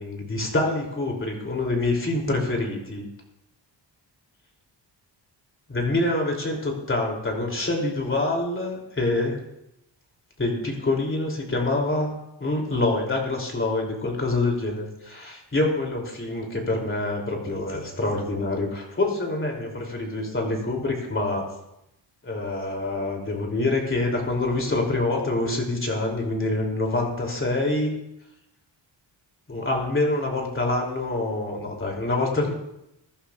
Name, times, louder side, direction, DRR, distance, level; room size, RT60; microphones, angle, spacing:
voice 1, 0.0-3.0 5.7-9.4 10.4-12.1 12.4-21.5 22.2-27.9 29.5-32.5, left 2 dB, 25° left, 0 dB, 3.0 m, -26 dB
22.0 x 11.5 x 2.4 m, 0.84 s
wide cardioid pair, 135°, 46 cm